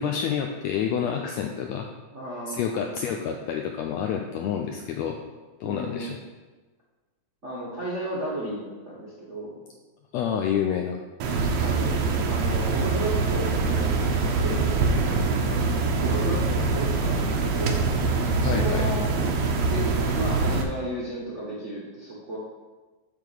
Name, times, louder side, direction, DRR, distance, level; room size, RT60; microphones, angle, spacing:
voice 1, 0.0-1.9 2.5-5.2 5.6-6.2 10.1-11.0 18.4-18.9, left 8 dB, 90° left, 3 dB, 1.5 m, -28 dB
voice 2, 2.1-3.0 5.6-6.2 7.4-9.6 11.6-12.0 12.2-15.6 16.0-17.8 18.4-19.1 19.7-22.4, right 1 dB, 45° right, -8 dB, 0.9 m, -34 dB
sound 1, 11.2-20.6, right 3 dB, 70° right, 1.8 m, -24 dB
9.0 x 3.7 x 6.7 m, 1.3 s
omnidirectional pair, 3.6 m